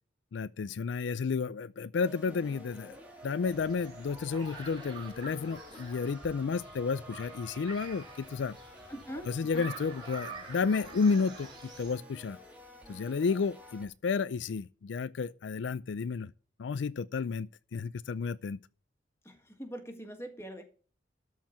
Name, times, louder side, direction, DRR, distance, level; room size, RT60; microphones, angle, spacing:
voice 1, 0.3-3.0 3.2-8.6 9.3-12.4 12.9-16.3 16.6-18.6, left 5 dB, 75° left, 0.4 m, -32 dB
sound 1, 2.0-13.9, equal, 10° right, 2.0 m, -51 dB
sound 2, 3.4-11.9, right 3 dB, 25° right, 3.4 m, -48 dB
voice 2, 8.9-9.7 19.2-20.6, equal, 15° left, 1.6 m, -43 dB
13.0 x 4.6 x 7.2 m
head